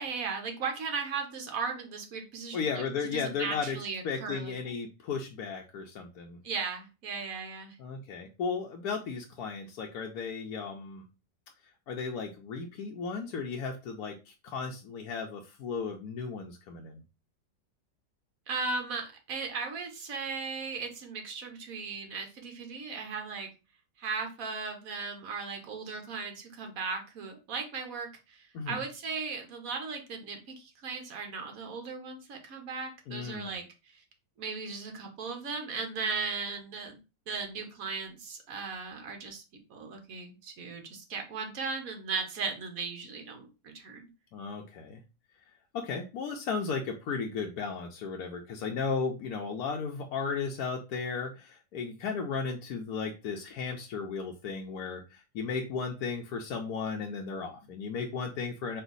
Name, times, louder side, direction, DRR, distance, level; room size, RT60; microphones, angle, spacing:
voice 1, 0.0-4.7 6.4-7.8 18.5-23.5 24.0-34.0 34.4-37.0 37.3-39.4 39.7-44.1, right 4 dB, 60° right, 4 dB, 1.3 m, -37 dB
voice 2, 2.5-3.8 4.0-6.4 7.8-11.0 11.9-17.0 28.5-28.8 33.1-33.5 44.3-45.0 45.7-58.8, left 5 dB, 70° left, 1 dB, 1.0 m, -35 dB
4.4 x 2.4 x 3.8 m, 0.30 s
omnidirectional pair, 1.8 m